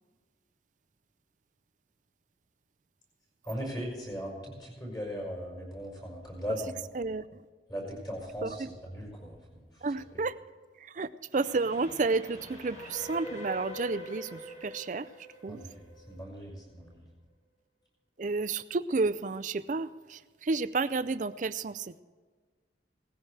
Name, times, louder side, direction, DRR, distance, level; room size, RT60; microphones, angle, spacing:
voice 1, 3.5-6.7 7.7-8.6 8.9-9.6 15.5-15.8 16.1-17.0, equal, 25° left, -2 dB, 5.2 m, -38 dB
voice 2, 6.9-7.4 8.4-8.7 9.8-10.4 10.8-15.1 15.4-15.6 18.2-22.0, right 3 dB, 45° right, 15 dB, 0.4 m, -31 dB
Train, 11.3-16.6, left 1 dB, 40° left, 3.9 m, -44 dB
18.0 x 15.0 x 3.4 m, 1.5 s
head